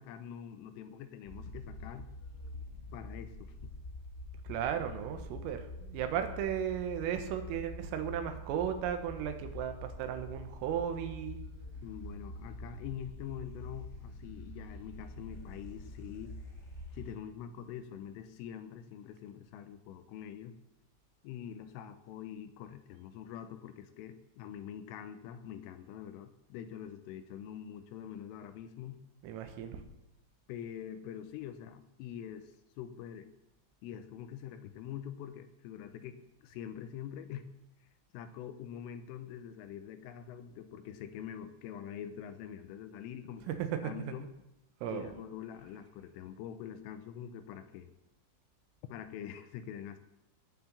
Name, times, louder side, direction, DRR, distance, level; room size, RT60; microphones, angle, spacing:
voice 1, 0.0-2.1 2.9-3.7 11.8-16.3 16.9-20.6 21.2-29.0 30.5-32.5 32.8-33.3 33.8-37.5 38.1-44.3 44.9-47.9 48.8-50.0, left 9 dB, 85° left, 10 dB, 3.5 m, -45 dB
sound 1, 1.2-17.2, left 1 dB, 20° left, 2.3 m, -46 dB
voice 2, 4.5-11.4 29.2-29.8 43.5-43.7 44.1-44.2 44.8-45.1, right 9 dB, 85° right, 7 dB, 3.9 m, -35 dB
18.0 x 6.1 x 8.1 m, 0.89 s
omnidirectional pair, 5.9 m